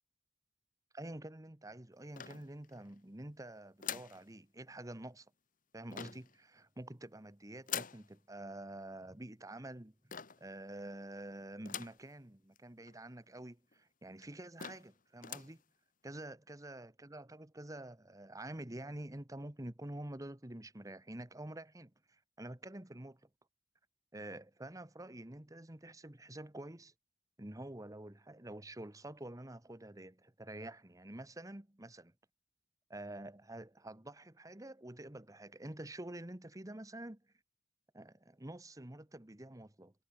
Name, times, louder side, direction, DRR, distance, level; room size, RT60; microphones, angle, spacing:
voice 1, 0.9-5.2 5.7-9.9 10.4-15.6 16.0-21.9 22.4-23.2 24.1-26.9 27.4-32.1 32.9-37.2 37.9-39.9, right 1 dB, 20° right, 1.3 m, -48 dB
sound 1, 2.2-2.9 3.8-4.2 5.9-6.4 7.7-8.1 10.1-10.5 11.7-12.1 12.6-12.7 12.9-13.0 13.7-13.8 14.2-14.3 14.6-14.9 15.2-15.6, left 8 dB, 50° left, 1.9 m, -43 dB
head